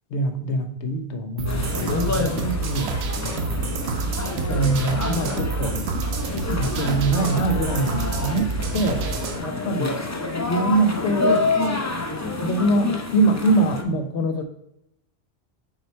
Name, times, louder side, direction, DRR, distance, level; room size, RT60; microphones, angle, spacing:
voice 1, 0.1-3.0 4.5-5.8 6.5-9.1 9.4-10.0 10.5-11.4 12.4-14.4, right 2 dB, 85° left, 6 dB, 1.1 m, -23 dB
sound 1, 1.4-9.4, right 4 dB, 70° right, 0.9 m, -28 dB
sound 2, 1.5-13.8, left 3 dB, 20° left, 0.5 m, -28 dB
6.1 x 4.5 x 4.3 m, 0.77 s
omnidirectional pair, 1.1 m